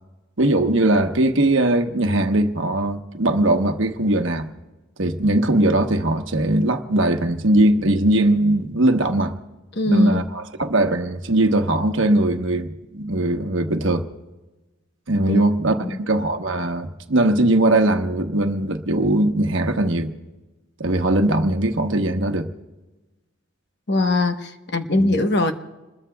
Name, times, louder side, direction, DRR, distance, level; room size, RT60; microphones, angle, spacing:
voice 1, 0.4-4.5 5.0-9.3 9.9-14.0 15.1-20.1 20.8-22.5 25.0-25.1, right 1 dB, 70° right, 1.1 m, -20 dB
voice 2, 9.7-10.2 15.3-15.4 15.8-16.0 23.9-25.5, left 2 dB, 55° left, 1.0 m, -21 dB
28.0 x 21.0 x 2.3 m
head